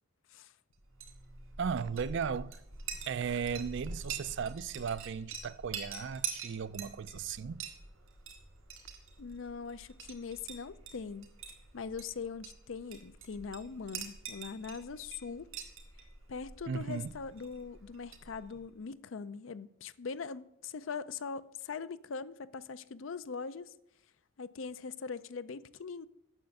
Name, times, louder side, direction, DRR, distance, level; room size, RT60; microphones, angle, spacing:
Chink clink, 0.8-18.7, right 5 dB, 85° right, 2.6 m, -46 dB
voice 1, 1.6-2.6 3.1-7.7 16.7-17.1, right 6 dB, 60° right, 0.4 m, -36 dB
voice 2, 9.2-11.3 11.7-15.5 16.3-23.7 24.4-26.1, left 5 dB, 70° left, 0.5 m, -41 dB
9.3 x 6.9 x 7.7 m
head